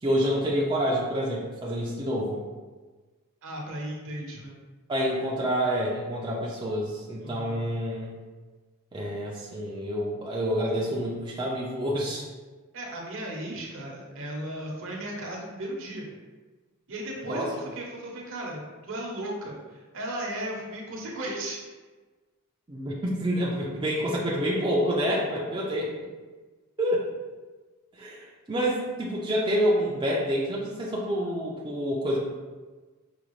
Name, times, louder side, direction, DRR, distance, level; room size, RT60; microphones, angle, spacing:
voice 1, 0.0-2.4 4.9-8.2 8.9-12.3 17.3-17.5 22.7-25.9 26.8-27.0 28.0-32.2, equal, 20° right, -5 dB, 0.4 m, -28 dB
voice 2, 3.4-4.6 7.2-7.6 12.7-16.1 16.9-18.6 18.9-21.6, right 1 dB, 60° right, -1 dB, 0.8 m, -36 dB
5.0 x 2.3 x 3.0 m, 1.3 s
head